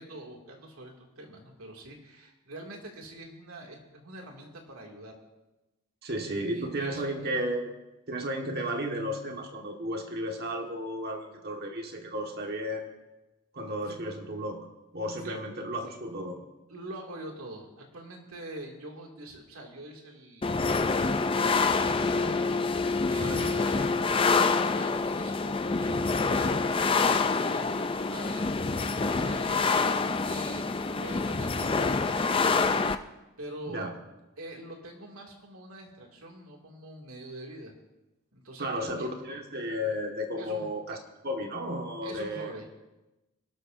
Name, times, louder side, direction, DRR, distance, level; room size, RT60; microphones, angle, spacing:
voice 1, 0.0-5.2 6.3-7.3 13.9-14.0 15.2-15.4 16.7-28.8 29.1-29.9 30.2-30.7 31.0-32.8 33.4-33.8 34.4-37.7 38.3-39.1 40.4-40.7 42.0-42.7, right 1 dB, 90° right, 1 dB, 2.5 m, -44 dB
voice 2, 6.0-7.7 8.1-12.9 13.5-14.6 14.9-16.4 23.1-23.5 33.7-33.9 38.6-41.0 41.2-42.5, equal, 45° right, 2 dB, 1.7 m, -33 dB
sound 1, 20.4-33.0, left 4 dB, 25° left, 0.4 m, -26 dB
25.5 x 12.5 x 2.7 m, 1.0 s
head